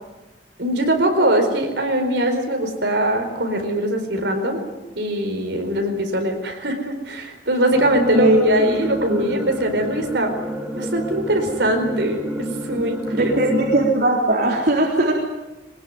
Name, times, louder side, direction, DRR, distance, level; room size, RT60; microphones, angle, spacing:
voice 1, 0.6-4.6 5.0-10.3 10.7-13.3, right 1 dB, 75° right, 4 dB, 4.6 m, -22 dB
sound 1, 7.7-13.9, equal, 10° right, 2.9 m, -29 dB
voice 2, 13.1-15.1, right 1 dB, 60° right, -1 dB, 3.7 m, -19 dB
22.5 x 20.0 x 9.5 m, 1.1 s
head